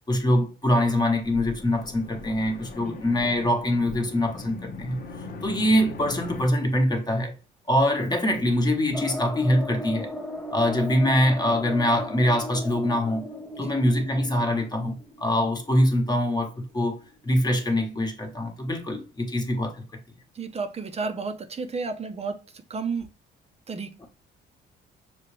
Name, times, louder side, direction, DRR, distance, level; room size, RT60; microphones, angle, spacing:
voice 1, 0.1-5.0 5.4-7.3 7.7-10.1 10.5-13.3 13.6-17.0 17.2-19.8, left 1 dB, 20° left, 1.1 m, -24 dB
sound 1, 1.2-6.5, left 3 dB, 50° left, 0.9 m, -40 dB
sound 2, 8.9-17.4 17.8-17.9 18.1-18.2, left 1 dB, 5° left, 0.6 m, -38 dB
voice 2, 20.3-23.1 23.7-24.1, right 4 dB, 35° right, 0.7 m, -32 dB
6.0 x 2.4 x 3.2 m
cardioid pair, 100°, 19 cm